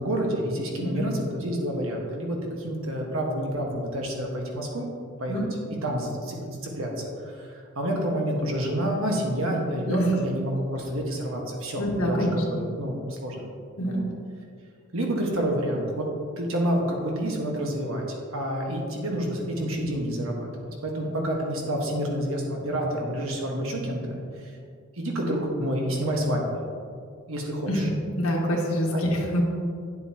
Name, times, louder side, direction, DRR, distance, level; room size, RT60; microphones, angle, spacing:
voice 1, 0.0-4.9 5.2-5.4 5.8-13.4 13.8-14.0 14.9-16.1 16.4-18.0 18.3-24.5 24.9-26.6 27.3-27.9 28.9-29.0, equal, 75° right, -1 dB, 1.5 m, -28 dB
voice 2, 11.8-12.6 13.8-14.0 27.7-29.4, equal, 85° left, -1 dB, 1.6 m, -26 dB
9.7 x 8.0 x 3.0 m, 2.3 s
head